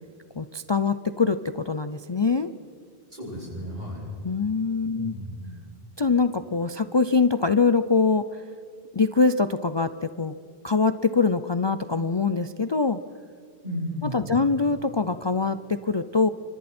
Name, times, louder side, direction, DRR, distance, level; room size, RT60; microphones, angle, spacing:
voice 1, 0.4-2.5 4.2-5.1 6.0-8.3 8.9-10.3 10.6-13.0 14.1-16.3, left 4 dB, 35° left, 11 dB, 0.5 m, -23 dB
voice 2, 3.1-4.1 4.9-5.6 13.6-14.5, equal, 45° right, -4 dB, 7.8 m, -34 dB
29.0 x 26.0 x 4.4 m, 2.4 s
omnidirectional pair, 1.1 m